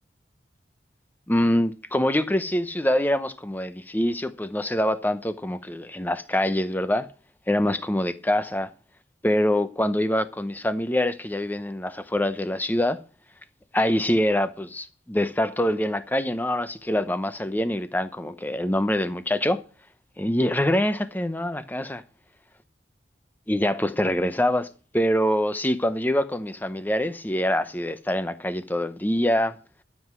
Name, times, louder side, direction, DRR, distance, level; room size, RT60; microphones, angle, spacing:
voice 1, 1.3-7.1 7.5-8.7 9.2-13.0 13.7-19.6 20.2-22.0 23.5-24.7 24.9-29.6, left 1 dB, 10° left, 0.8 m, -25 dB
13.0 x 7.7 x 6.1 m
head